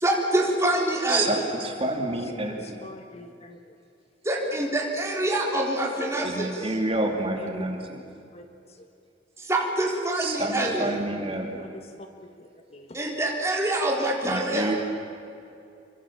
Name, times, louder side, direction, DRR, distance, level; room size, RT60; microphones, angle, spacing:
voice 1, 0.0-1.3 4.3-6.5 9.5-10.9 12.9-14.7, right 1 dB, 15° right, -1 dB, 4.1 m, -25 dB
voice 2, 1.1-2.8 6.2-8.0 10.2-11.7 14.2-14.8, right 2 dB, 30° right, 2 dB, 2.9 m, -29 dB
voice 3, 2.6-3.6 7.4-7.9 8.3-8.8 11.6-13.0, left 1 dB, 35° left, 6 dB, 1.4 m, -45 dB
28.0 x 24.0 x 7.4 m, 2.6 s
head